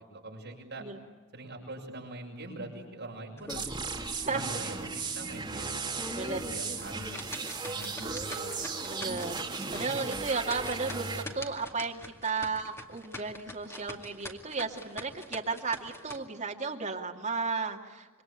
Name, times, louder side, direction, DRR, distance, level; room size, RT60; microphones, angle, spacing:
voice 1, 0.1-0.9 1.3-3.6 4.2-7.1 7.6-9.0 9.7-9.9, right 2 dB, 50° right, -1 dB, 7.2 m, -44 dB
sound 1, 3.4-4.1 4.5-4.6 5.1-5.2 5.8-16.2, left 1 dB, 10° left, 2.2 m, -44 dB
sound 2, 3.5-11.2, right 4 dB, 20° right, 2.5 m, -36 dB
voice 2, 4.2-4.6 6.1-6.4 8.8-18.1, right 4 dB, 35° right, 2 dB, 2.4 m, -34 dB
27.0 x 23.5 x 9.0 m, 1.3 s
head